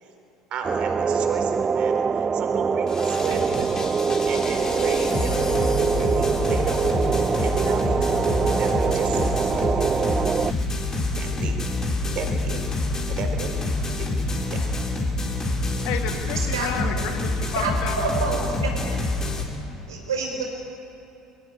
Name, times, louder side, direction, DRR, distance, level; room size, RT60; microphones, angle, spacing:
voice 1, 0.5-3.9 4.2-7.1 7.4-10.3 11.2-11.6 12.1-12.6 13.1-14.7, right 5 dB, 50° right, 5 dB, 3.9 m, -34 dB
sound 1, 0.6-10.5, right 6 dB, 30° right, 0.4 m, -24 dB
sound 2, 2.9-19.4, left 2 dB, 30° left, 4.2 m, -27 dB
voice 2, 15.9-18.3, left 8 dB, 65° left, 5 dB, 2.2 m, -31 dB
voice 3, 16.5-16.9 17.6-18.7 19.9-20.4, right 4 dB, 85° right, 1 dB, 4.3 m, -27 dB
21.5 x 15.5 x 9.8 m, 3.0 s
hypercardioid pair, 65°, 2 cm